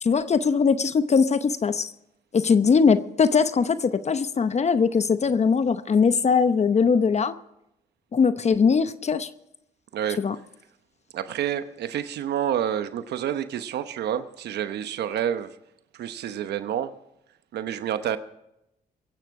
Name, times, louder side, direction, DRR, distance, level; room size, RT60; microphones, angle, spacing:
voice 1, 0.0-1.9 2.3-7.3 8.1-9.3 10.2-10.4, left 5 dB, 40° left, 12 dB, 0.8 m, -21 dB
voice 2, 11.1-15.5 15.9-16.9 17.5-18.2, right 10 dB, 80° right, 11 dB, 1.0 m, -28 dB
22.5 x 9.2 x 4.8 m, 0.84 s
cardioid pair, 80°, 17 cm